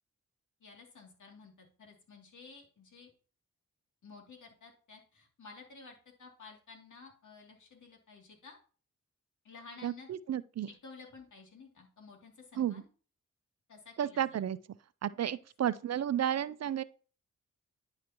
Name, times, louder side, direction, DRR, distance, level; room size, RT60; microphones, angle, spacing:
voice 1, 0.6-1.5 1.8-3.1 4.0-8.6 9.4-10.1 10.7-12.9 13.7-14.4 15.2-15.3 15.6-15.7, left 4 dB, 65° left, 2.8 m, -53 dB
voice 2, 9.8-10.7 12.6-12.8 14.0-14.6 15.0-16.8, right 10 dB, 55° right, 0.5 m, -32 dB
10.5 x 5.0 x 3.0 m
supercardioid pair, 45°, 33 cm